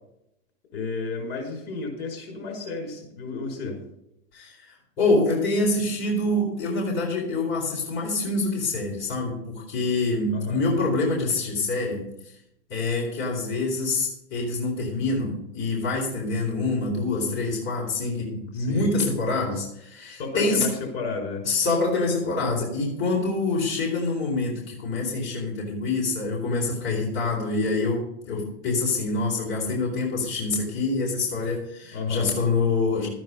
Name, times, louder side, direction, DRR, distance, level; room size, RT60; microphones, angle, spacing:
voice 1, 0.7-3.8 10.3-10.6 18.5-18.9 20.2-21.5 31.9-32.3, left 4 dB, 60° left, 2 dB, 5.5 m, -32 dB
voice 2, 4.3-12.3 12.7-20.7 21.4-33.1, left 3 dB, 40° left, -2 dB, 4.3 m, -26 dB
13.0 x 9.4 x 5.4 m, 0.80 s
hypercardioid pair, 125°, 33 cm